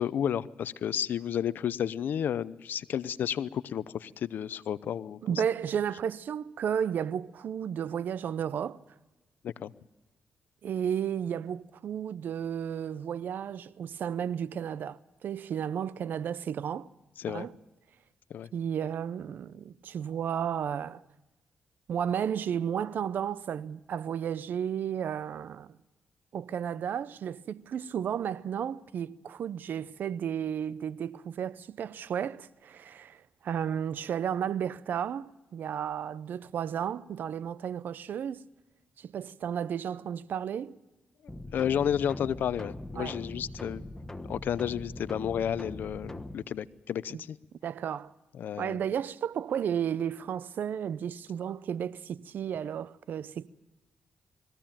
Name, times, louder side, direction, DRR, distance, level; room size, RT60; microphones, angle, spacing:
voice 1, 0.0-5.2 9.4-9.7 17.2-17.5 18.3-18.5 41.5-43.8 44.3-47.4 48.3-48.8, left 9 dB, 75° left, 0.6 m, -32 dB
voice 2, 5.2-8.8 10.6-16.9 17.3-17.5 18.5-21.0 21.9-25.8 26.3-38.4 39.0-40.8 43.0-43.2 47.1-47.2 47.6-48.1 48.6-53.5, right 8 dB, 75° right, 0.6 m, -33 dB
sound 1, 41.3-46.3, left 1 dB, 15° left, 1.3 m, -41 dB
21.5 x 15.5 x 8.8 m
cardioid pair, 65°, 3 cm